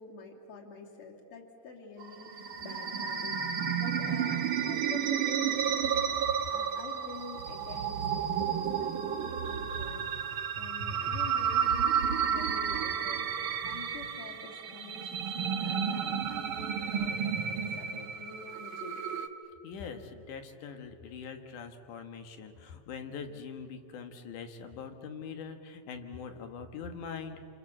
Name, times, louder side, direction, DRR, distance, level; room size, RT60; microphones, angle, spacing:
voice 1, 0.0-19.0, left 4 dB, 45° left, 0 dB, 3.7 m, -47 dB
sound 1, 2.0-19.3, right 7 dB, 60° right, 1.4 m, -32 dB
voice 2, 19.6-27.5, left 6 dB, 80° left, 6 dB, 3.0 m, -43 dB
28.0 x 28.0 x 7.5 m, 2.6 s
omnidirectional pair, 3.5 m